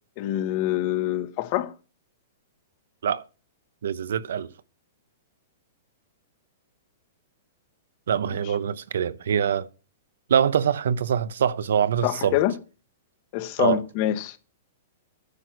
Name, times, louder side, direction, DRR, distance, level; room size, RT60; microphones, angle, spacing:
voice 1, 0.2-1.7 12.0-12.6 13.3-14.4, left 13 dB, 40° left, 1.0 m, -25 dB
voice 2, 3.8-4.5 8.1-9.7 10.3-12.4 13.6-13.8, right 8 dB, 80° right, 0.7 m, -24 dB
9.7 x 6.2 x 6.2 m
hypercardioid pair, 155°, 0 cm